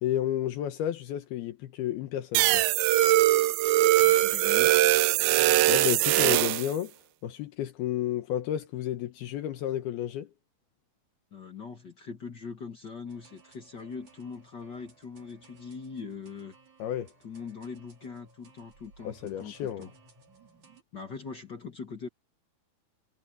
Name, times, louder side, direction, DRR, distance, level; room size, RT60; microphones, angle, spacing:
voice 1, 0.0-2.7 5.7-6.9 7.2-10.3 16.8-17.1 19.0-19.9, left 11 dB, 75° left, 3.0 m, -31 dB
sound 1, 2.3-6.7, right 16 dB, 80° right, 2.4 m, -22 dB
voice 2, 4.0-4.7 11.3-16.5 17.2-19.9 20.9-22.1, left 5 dB, 50° left, 1.3 m, -41 dB
sound 2, 13.1-20.8, right 4 dB, 45° right, 6.5 m, -59 dB
omnidirectional pair, 4.6 m